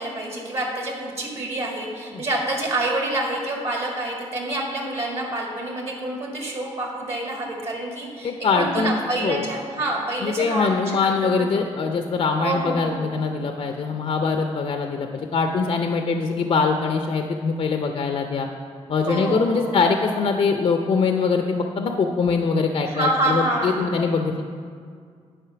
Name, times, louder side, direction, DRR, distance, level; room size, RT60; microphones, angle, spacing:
voice 1, 0.0-11.5 12.4-13.1 19.0-19.8 22.9-23.9, right 1 dB, 55° right, -1 dB, 1.9 m, -27 dB
voice 2, 8.2-9.5 10.2-18.5 18.9-24.4, left 4 dB, 55° left, 4 dB, 0.5 m, -23 dB
10.0 x 4.4 x 5.8 m, 2.1 s
cardioid pair, 70°, 12 cm